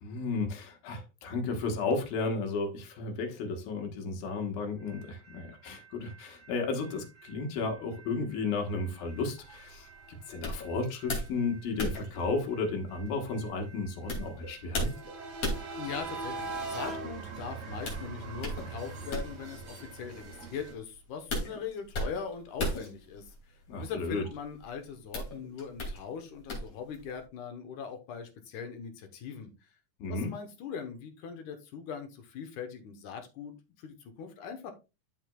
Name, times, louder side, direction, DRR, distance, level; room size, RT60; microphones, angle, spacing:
voice 1, 0.0-14.9 23.7-24.3 30.0-30.3, left 3 dB, 85° left, 3.2 m, -33 dB
sound 1, 4.9-20.7, right 3 dB, 40° right, 1.7 m, -44 dB
sound 2, 8.8-27.2, left 1 dB, 45° left, 3.3 m, -39 dB
voice 2, 15.8-29.5 30.1-34.7, left 6 dB, 70° left, 2.3 m, -41 dB
12.5 x 5.1 x 2.3 m
omnidirectional pair, 4.0 m